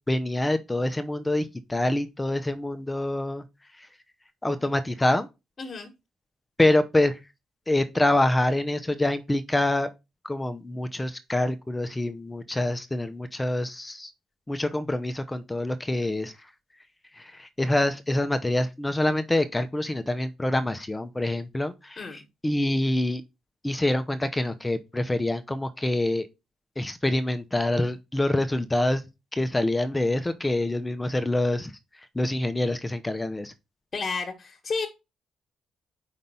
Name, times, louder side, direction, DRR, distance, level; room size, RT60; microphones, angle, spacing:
voice 1, 0.1-3.4 4.4-5.3 6.6-7.2 7.7-9.9 10.2-14.1 14.5-16.3 17.2-23.2 23.6-26.3 26.8-29.0 29.3-31.7 32.1-33.5, left 1 dB, 15° left, 0.7 m, -26 dB
voice 2, 5.6-5.9 22.0-22.2 33.9-34.9, left 4 dB, 40° left, 1.5 m, -31 dB
5.2 x 4.1 x 5.5 m
cardioid pair, 90°, 0 cm